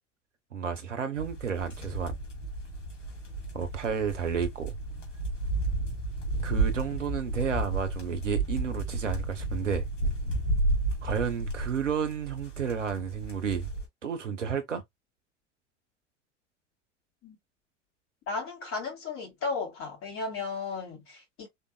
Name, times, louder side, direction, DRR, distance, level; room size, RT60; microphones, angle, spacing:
voice 1, 0.5-2.2 3.5-4.7 6.4-9.8 11.0-13.7 14.0-14.8, right 7 dB, 85° right, 1.1 m, -31 dB
sound 1, 1.1-13.9, right 2 dB, 80° left, 2.3 m, -32 dB
voice 2, 18.3-21.5, left 4 dB, 35° left, 3.1 m, -35 dB
4.6 x 3.7 x 2.2 m
figure-of-eight pair, 80°, 36 cm